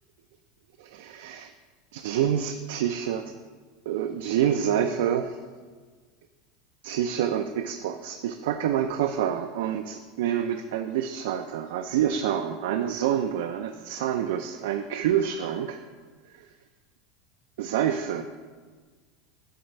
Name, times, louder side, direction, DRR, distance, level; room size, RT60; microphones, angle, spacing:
voice 1, 0.8-1.5 1.9-3.3 3.9-5.4 6.8-15.8 16.3-16.5 17.6-18.2, right 9 dB, 80° right, 7 dB, 0.4 m, -27 dB
7.7 x 4.0 x 5.4 m, 1.5 s
supercardioid pair, 160°, 0 cm